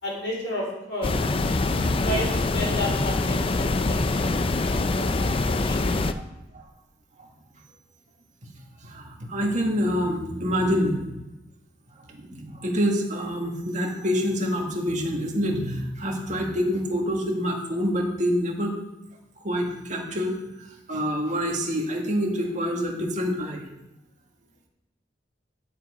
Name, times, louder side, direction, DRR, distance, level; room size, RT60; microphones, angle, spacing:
voice 1, 0.0-1.2 2.0-4.6 4.9-5.9, left 1 dB, 85° left, -2 dB, 4.0 m, -32 dB
sound 1, 1.0-6.1, left 3 dB, 30° left, 0.4 m, -24 dB
voice 2, 8.8-11.1 12.1-18.7 19.4-23.7, equal, 40° right, 1 dB, 1.8 m, -27 dB
10.5 x 7.1 x 5.0 m, 0.94 s
head